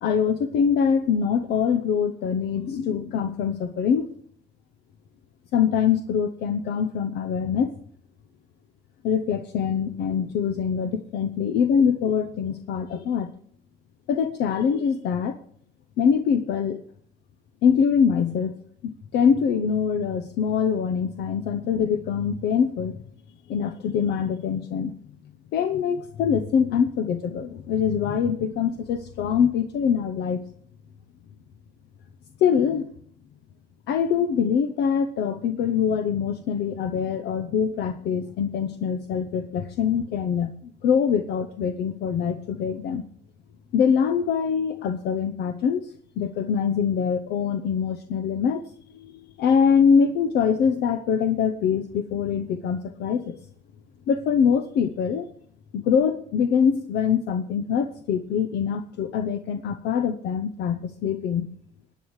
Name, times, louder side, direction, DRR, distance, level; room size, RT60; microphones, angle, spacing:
voice 1, 0.0-4.1 5.5-7.8 9.0-13.3 14.1-15.4 16.0-16.8 17.6-18.5 18.8-22.9 23.5-24.9 25.5-30.4 32.4-32.9 33.9-43.0 43.7-48.6 48.9-53.4 54.1-55.3 55.7-61.5, left 7 dB, 75° left, 8 dB, 0.8 m, -24 dB
21.5 x 9.2 x 3.2 m, 0.64 s
cardioid pair, 110°, 17 cm